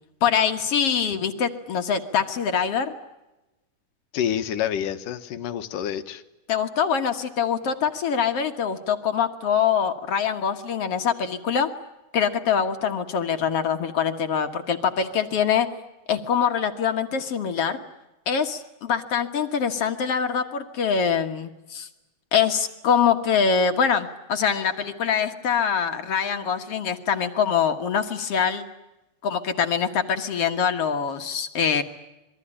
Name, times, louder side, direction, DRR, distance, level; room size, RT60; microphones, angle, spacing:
voice 1, 0.2-2.9 6.5-11.7 12.1-15.7 16.1-17.8 18.3-21.9 22.3-28.7 29.2-31.8, left 7 dB, 55° left, 6 dB, 2.2 m, -24 dB
voice 2, 4.1-6.2, left 9 dB, 90° left, 10 dB, 2.9 m, -28 dB
27.0 x 22.0 x 9.9 m, 1.0 s
omnidirectional pair, 3.7 m